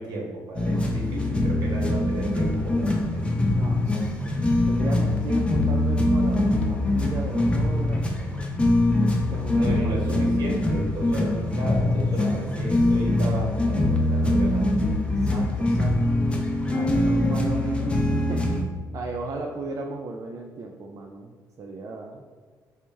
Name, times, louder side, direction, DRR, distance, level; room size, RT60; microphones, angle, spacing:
voice 1, 0.0-3.2 9.5-14.8, right 2 dB, 65° right, -2 dB, 1.0 m, -34 dB
sound 1, 0.5-18.6, left 1 dB, 15° left, 0.5 m, -23 dB
voice 2, 3.4-4.4 4.7-8.5 9.0-10.7 12.2-12.7 15.2-18.6 18.9-22.2, right 3 dB, 50° right, 0 dB, 0.3 m, -37 dB
4.4 x 2.0 x 3.2 m, 1.5 s
cardioid pair, 95°, 7 cm